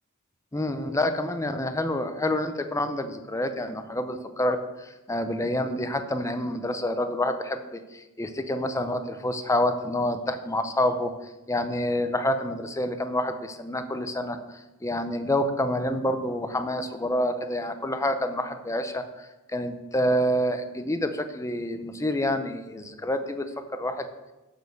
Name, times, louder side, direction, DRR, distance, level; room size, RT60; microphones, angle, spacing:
voice 1, 0.5-11.1 11.5-14.4 14.8-23.5 23.7-24.1, left 1 dB, 15° left, 8 dB, 0.6 m, -28 dB
7.0 x 6.5 x 6.9 m, 1.1 s
head